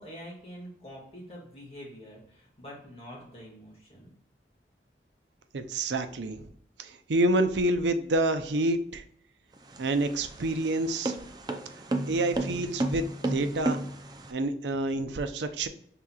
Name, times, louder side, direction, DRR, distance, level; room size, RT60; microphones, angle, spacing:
voice 1, 0.0-4.1, equal, 35° left, -4 dB, 1.9 m, -46 dB
voice 2, 5.5-6.5 6.8-9.0 9.8-11.2 12.1-13.8 14.3-15.7, right 2 dB, 85° right, 8 dB, 0.5 m, -28 dB
sound 1, 9.6-14.3, right 2 dB, 25° right, 0.4 m, -32 dB
5.8 x 3.7 x 2.3 m, 0.66 s
head